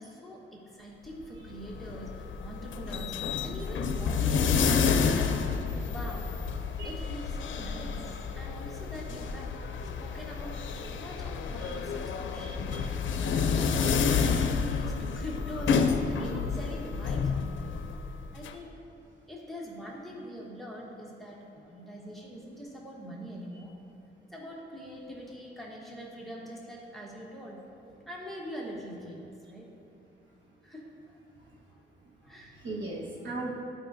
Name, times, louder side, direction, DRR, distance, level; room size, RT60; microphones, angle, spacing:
voice 1, 0.0-4.7 5.1-5.4 5.9-6.3 6.8-9.7 10.0-17.8 18.3-18.8 19.3-23.8 24.3-27.7 28.1-29.7 30.6-31.2 31.7-31.8 32.2-32.6, equal, ahead, -4 dB, 1.1 m, -43 dB
sound 1, 1.5-18.5, left 5 dB, 85° left, 0.5 m, -30 dB
voice 2, 12.4-12.8 32.6-33.5, right 2 dB, 75° right, -4 dB, 1.3 m, -37 dB
12.0 x 5.1 x 2.6 m, 2.6 s
wide cardioid pair, 120°, 19 cm